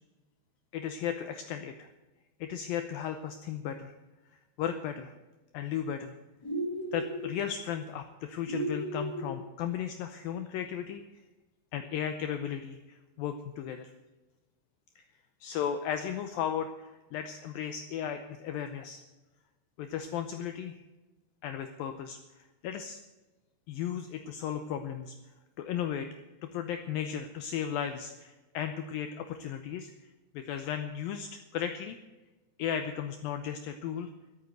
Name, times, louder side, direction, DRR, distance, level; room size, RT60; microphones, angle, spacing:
voice 1, 0.7-1.9 2.4-3.9 4.3-5.1 5.5-6.1 6.9-11.0 11.7-13.9 15.0-15.1 15.4-19.0 19.8-20.8 21.4-23.0 23.7-25.2 25.6-26.1 26.4-32.0 32.6-34.1, left 9 dB, 85° left, 8 dB, 2.0 m, -35 dB
sound 1, 6.4-7.3 8.4-9.4, right 1 dB, 5° left, 3.4 m, -34 dB
13.0 x 9.0 x 8.0 m, 1.1 s
omnidirectional pair, 5.1 m